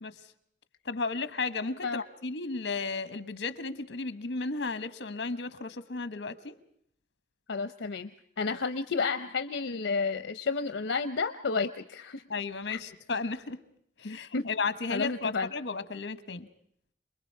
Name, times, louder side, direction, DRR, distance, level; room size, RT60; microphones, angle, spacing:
voice 1, 0.8-6.5 8.5-8.6 12.3-13.6 14.0-16.5, left 4 dB, 70° left, 13 dB, 1.2 m, -34 dB
voice 2, 7.5-8.1 8.4-12.2 12.7-12.8 14.0-14.5 14.9-15.5, left 4 dB, 85° left, 9 dB, 0.7 m, -31 dB
28.0 x 21.0 x 4.7 m, 0.69 s
head